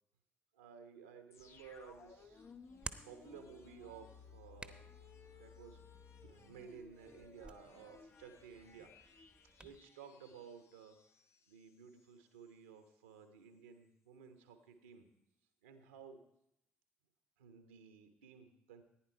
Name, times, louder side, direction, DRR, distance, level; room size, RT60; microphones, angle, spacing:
voice 1, 0.5-2.5 3.0-4.9 5.4-5.8 6.2-9.1 9.6-11.0 11.5-15.1 15.6-16.2 17.4-18.8, right 6 dB, 80° right, 7 dB, 1.3 m, -55 dB
sound 1, 1.3-12.1 12.4-12.5, left 5 dB, 45° left, 1.0 m, -60 dB
Hands, 1.4-9.8, right 2 dB, 15° right, 1.0 m, -56 dB
15.0 x 9.9 x 4.6 m, 0.79 s
figure-of-eight pair, 50°, 6 cm